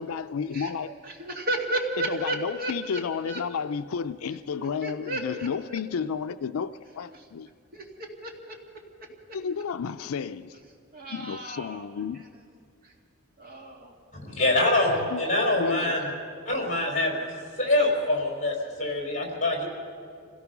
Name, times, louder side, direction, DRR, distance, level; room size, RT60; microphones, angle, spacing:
voice 1, 0.0-0.9 2.0-7.5 9.3-10.6 11.1-12.2 15.1-15.2 15.6-15.9, left 6 dB, 85° left, 0.4 m, -32 dB
voice 2, 1.0-3.4 4.6-5.8 7.1-7.2 7.7-7.8 8.2-8.6 10.9-11.9 12.1-12.2 12.8-12.9 13.4-13.9 15.8-15.9 16.8-16.9, right 1 dB, 45° right, 2.2 m, -33 dB
voice 3, 14.1-16.1 16.4-17.3 17.6-19.6, left 2 dB, 35° left, 4.7 m, -25 dB
25.5 x 17.5 x 6.0 m
head